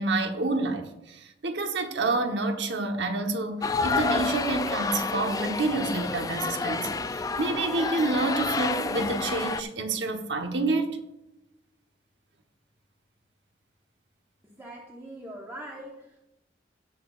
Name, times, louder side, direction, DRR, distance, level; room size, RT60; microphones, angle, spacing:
voice 1, 0.0-11.0, right 2 dB, 80° right, 1.0 m, -28 dB
sound 1, 3.6-9.6, left 4 dB, 20° left, 0.3 m, -29 dB
voice 2, 14.4-16.2, right 1 dB, 15° right, 1.1 m, -42 dB
18.0 x 6.3 x 2.4 m
head